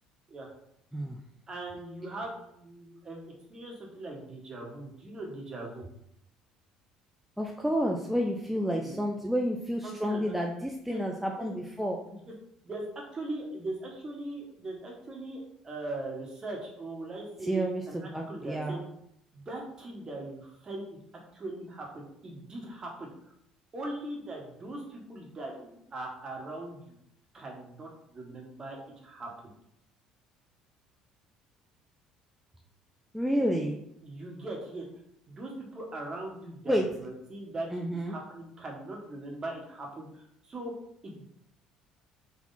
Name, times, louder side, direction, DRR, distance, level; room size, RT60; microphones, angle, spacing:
voice 1, 1.5-3.2 3.5-5.9 8.8-8.9 9.8-10.5 10.9-11.0 11.4-11.5 12.1-12.2 12.6-18.8 19.3-21.0 21.3-23.3 23.7-27.0 27.3-28.8 29.0-29.5 34.0-34.8 35.3-40.7 41.0-41.3, right 2 dB, 35° right, -1 dB, 1.5 m, -40 dB
voice 2, 7.4-12.0 17.4-18.8 33.1-33.8 36.7-36.9 37.7-38.2, equal, 5° right, 1 dB, 0.5 m, -30 dB
4.2 x 2.8 x 4.1 m, 0.75 s
hypercardioid pair, 70°, 2 cm